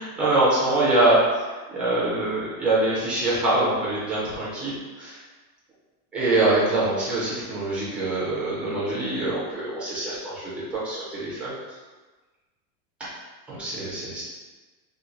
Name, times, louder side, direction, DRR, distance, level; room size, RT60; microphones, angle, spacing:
voice 1, 0.0-5.2 6.1-11.8 13.0-13.1 13.5-14.2, right 2 dB, 5° right, -8 dB, 0.4 m, -24 dB
2.9 x 2.1 x 3.7 m, 1.3 s
supercardioid pair, 155°, 45 cm